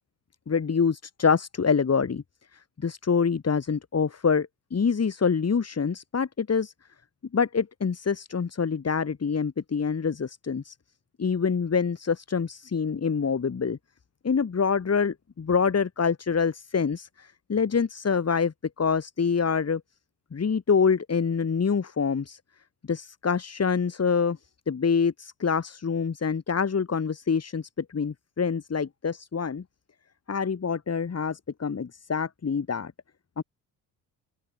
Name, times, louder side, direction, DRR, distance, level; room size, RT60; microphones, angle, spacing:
voice 1, 0.5-2.2 2.5-6.7 7.3-10.7 11.2-13.8 14.2-19.8 20.3-22.4 22.8-24.4 24.7-29.6 30.3-32.9 33.4-33.5, left 6 dB, 30° left, 4.7 m, -26 dB
open air
figure-of-eight pair, 50°, 46 cm